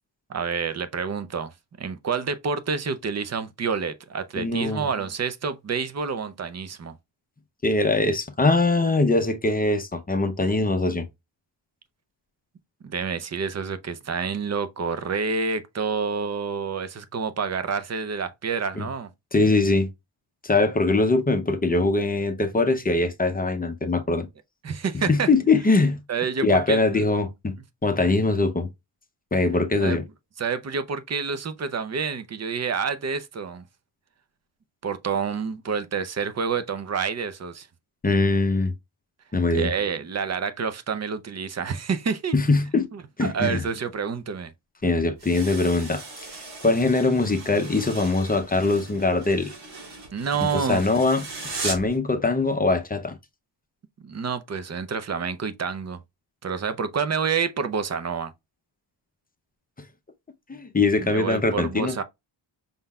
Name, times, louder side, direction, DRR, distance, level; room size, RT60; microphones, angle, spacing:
voice 1, 0.3-1.5 1.8-7.0 12.8-19.1 24.6-25.3 26.1-27.0 29.8-30.0 30.4-33.6 34.8-37.7 39.5-42.3 42.9-44.5 50.1-50.8 54.0-56.0 56.4-58.3 61.0-62.0, right 5 dB, 35° right, 0.5 m, -28 dB
voice 2, 4.4-4.9 7.6-11.1 18.8-18.9 19.3-19.9 20.4-24.3 25.1-26.0 26.4-27.5 27.8-28.7 29.3-30.0 38.0-38.7 39.3-39.7 42.3-42.9 43.2-43.6 44.8-46.3 46.6-49.5 50.5-51.3 51.6-53.2 60.5-62.0, left 3 dB, 20° left, 0.5 m, -22 dB
sound 1, 45.2-52.0, right 3 dB, 85° right, 2.9 m, -38 dB
5.4 x 3.7 x 2.3 m
wide cardioid pair, 170°, 46 cm